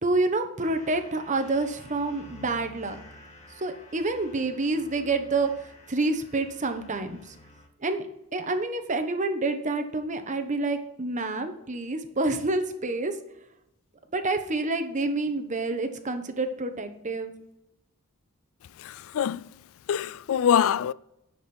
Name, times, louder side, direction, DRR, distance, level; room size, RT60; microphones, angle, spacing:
voice 1, 0.0-3.0 3.6-7.3 7.8-8.1 8.3-13.1 14.1-17.3, right 2 dB, 35° right, 1.1 m, -28 dB
sound 1, 0.6-7.7, left 1 dB, 30° left, 1.9 m, -50 dB
voice 2, 18.8-19.5 19.9-20.9, left 8 dB, 65° left, 0.3 m, -24 dB
10.5 x 7.2 x 4.4 m
head